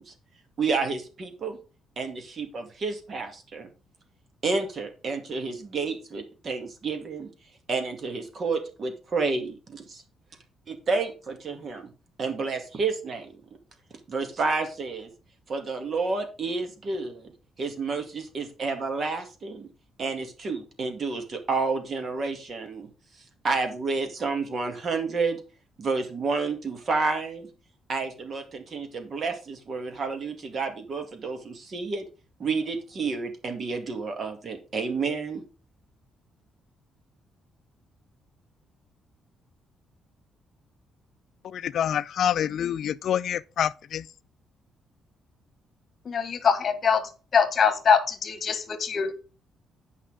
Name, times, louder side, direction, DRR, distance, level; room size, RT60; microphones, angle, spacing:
voice 1, 0.6-1.6 2.0-3.7 4.4-7.3 7.7-10.0 10.7-11.9 12.2-13.3 14.1-15.1 15.5-17.3 17.6-19.7 20.0-22.9 23.4-25.4 25.8-27.5 27.9-32.1 32.4-35.4, right 4 dB, 45° right, 2.2 m, -30 dB
voice 2, 41.4-44.1, left 9 dB, 65° left, 0.3 m, -27 dB
voice 3, 46.0-47.0 47.3-49.2, left 6 dB, 50° left, 1.5 m, -23 dB
8.7 x 5.5 x 5.0 m
cardioid pair, 90°, 0 cm